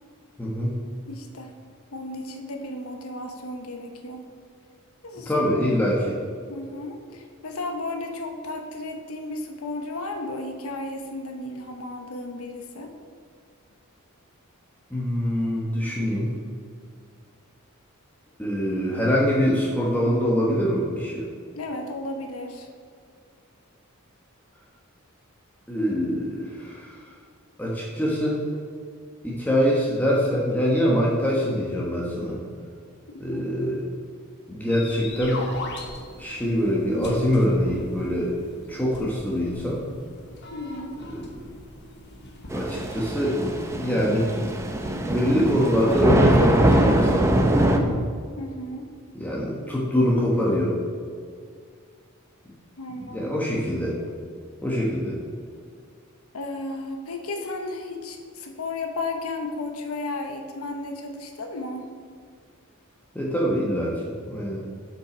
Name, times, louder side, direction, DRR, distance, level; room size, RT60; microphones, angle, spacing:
voice 1, 0.4-0.8 5.3-6.2 14.9-16.3 18.4-21.2 25.7-27.0 27.6-28.4 29.2-32.4 33.2-33.8 34.5-35.4 36.2-38.3 38.7-39.8 41.1-41.2 42.5-43.4 43.7-44.2 45.1-47.3 49.1-50.7 53.0-53.9 54.6-55.1 63.1-63.9 64.3-64.6, equal, 10° left, -5 dB, 1.1 m, -24 dB
voice 2, 1.1-1.6 1.9-4.3 5.0-5.7 6.5-12.9 21.5-22.7 33.1-33.5 40.5-41.0 48.4-48.9 52.8-53.3 56.3-61.9, left 2 dB, 80° left, 4 dB, 1.0 m, -34 dB
sound 1, 34.7-46.0, left 1 dB, 55° left, 1.1 m, -40 dB
Thunder / Rain, 42.5-47.8, right 1 dB, 15° right, 0.6 m, -22 dB
7.4 x 5.9 x 5.0 m, 2.1 s
head